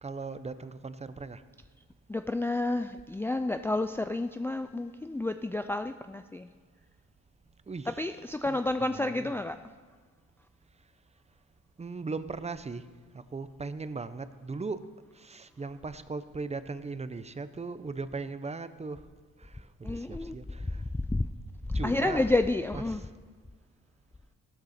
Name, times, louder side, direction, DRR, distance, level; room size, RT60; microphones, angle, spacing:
voice 1, 0.0-1.4 7.7-8.1 8.4-9.4 11.8-12.9 13.1-14.9 15.1-19.0 19.4-20.8 21.7-22.2 22.7-23.1, right 4 dB, 20° right, 13 dB, 0.7 m, -38 dB
voice 2, 2.1-6.5 8.0-9.6 19.8-20.4 21.1-21.2 21.7-23.0, left 2 dB, 10° left, 9 dB, 0.4 m, -30 dB
16.0 x 13.0 x 4.3 m, 1.5 s
cardioid pair, 90°, 30 cm